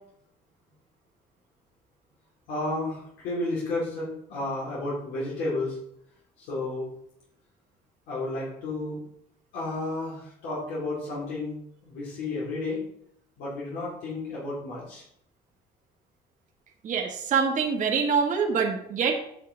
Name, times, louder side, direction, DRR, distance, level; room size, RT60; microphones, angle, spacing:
voice 1, 2.5-5.8 6.4-6.9 8.1-9.0 9.5-11.6 11.8-12.8 13.4-15.0, left 2 dB, 85° left, -7 dB, 3.5 m, -32 dB
voice 2, 16.8-19.2, right 6 dB, 50° right, 0 dB, 1.5 m, -25 dB
9.4 x 6.6 x 3.4 m, 0.72 s
cardioid pair, 110°, 17 cm